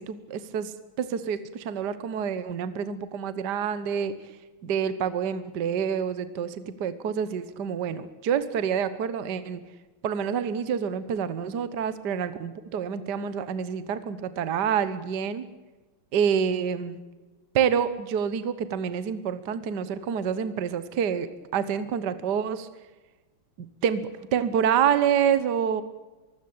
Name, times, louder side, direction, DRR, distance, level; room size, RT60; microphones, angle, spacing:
voice 1, 0.0-4.1 4.6-9.6 10.0-15.5 16.1-17.0 17.5-21.3 21.5-22.7 23.6-24.0 24.3-25.8, right 8 dB, 55° right, 13 dB, 1.6 m, -27 dB
23.5 x 16.5 x 8.7 m, 1.2 s
omnidirectional pair, 2.4 m